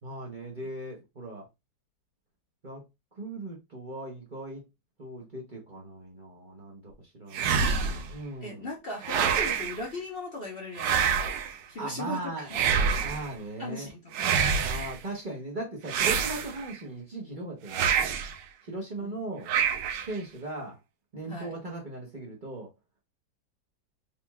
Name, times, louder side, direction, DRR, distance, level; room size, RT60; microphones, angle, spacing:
voice 1, 0.0-1.5 2.6-2.8 3.1-4.6 5.0-8.7 11.8-12.5 13.0-13.9 14.6-18.1 18.6-19.5 20.0-20.8 21.1-22.7, right 2 dB, 50° right, 0.6 m, -38 dB
sound 1, 7.3-8.1 9.0-9.8 10.8-11.6 12.5-13.3 14.1-15.0 15.9-16.8 17.7-18.4 19.5-20.2, right 7 dB, 75° right, 1.1 m, -26 dB
voice 2, 7.5-8.1 8.4-11.2 11.7-12.2 12.5-12.6 13.6-14.3 14.7-14.9 19.0-19.2 21.3-21.5, left 1 dB, 45° left, 0.7 m, -38 dB
4.0 x 3.1 x 2.2 m
omnidirectional pair, 2.0 m